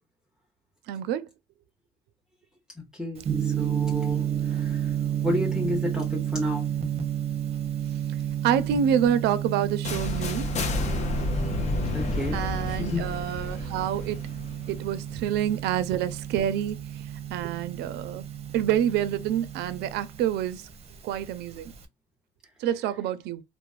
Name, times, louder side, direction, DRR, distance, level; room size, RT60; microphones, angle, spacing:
voice 1, 0.9-1.2 8.4-10.5 12.3-14.2 14.7-16.8 17.3-18.2 18.5-20.6 21.0-21.7 22.6-23.4, right 10 dB, 80° right, 0.4 m, -27 dB
voice 2, 2.8-4.9 5.2-6.7 11.9-12.4 12.7-13.1, left 1 dB, 5° right, 0.7 m, -31 dB
Gong, 3.2-21.8, right 10 dB, 40° right, 0.6 m, -32 dB
sound 1, 9.8-15.7, left 3 dB, 45° left, 0.6 m, -31 dB
3.1 x 2.0 x 2.4 m
cardioid pair, 110°, 17 cm